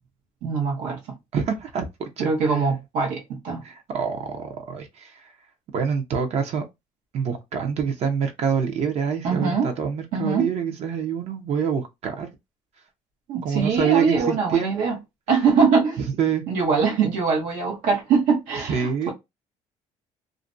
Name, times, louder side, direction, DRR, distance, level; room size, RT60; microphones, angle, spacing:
voice 1, 0.4-1.0 2.2-3.6 9.2-9.7 10.1-10.5 13.3-15.0 15.3-16.0 16.5-19.1, right 5 dB, 85° right, 0.9 m, -22 dB
voice 2, 1.3-2.6 3.6-5.3 5.7-6.6 7.1-12.3 13.4-14.8 16.0-16.4 18.7-19.1, right 7 dB, 55° right, 0.6 m, -26 dB
2.5 x 2.1 x 2.5 m
cardioid pair, 110°, 13 cm